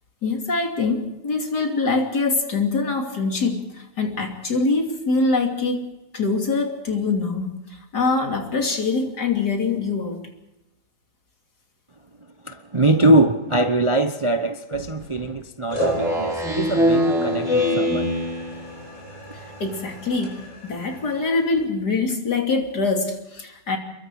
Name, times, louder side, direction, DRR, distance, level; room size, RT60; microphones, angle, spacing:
voice 1, 0.2-5.9 6.1-10.3 19.3-23.8, left 3 dB, 70° left, 3.4 m, -24 dB
voice 2, 12.4-18.1, right 1 dB, 25° right, 0.7 m, -22 dB
sound 1, 14.7-15.3 15.7-21.7, equal, 45° left, 5.9 m, -34 dB
Speech synthesizer, 15.8-18.8, left 1 dB, ahead, 7.2 m, -23 dB
28.0 x 22.0 x 4.8 m
omnidirectional pair, 1.8 m